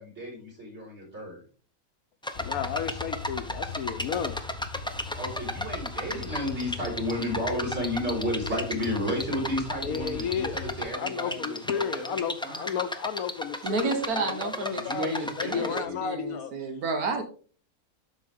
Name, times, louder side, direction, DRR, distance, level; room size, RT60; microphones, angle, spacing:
voice 1, 0.0-1.4 5.2-12.8 14.7-16.0, left 1 dB, 45° right, 4.5 m, -32 dB
sound 1, 2.2-15.8, left 1 dB, 5° left, 0.5 m, -35 dB
sound 2, 2.3-10.9, left 5 dB, 40° left, 0.9 m, -40 dB
voice 2, 2.4-4.4 9.8-10.6 10.9-16.5, left 7 dB, 75° left, 1.2 m, -33 dB
voice 3, 13.6-17.2, right 3 dB, 80° right, 1.7 m, -31 dB
12.0 x 5.9 x 3.7 m
omnidirectional pair, 1.6 m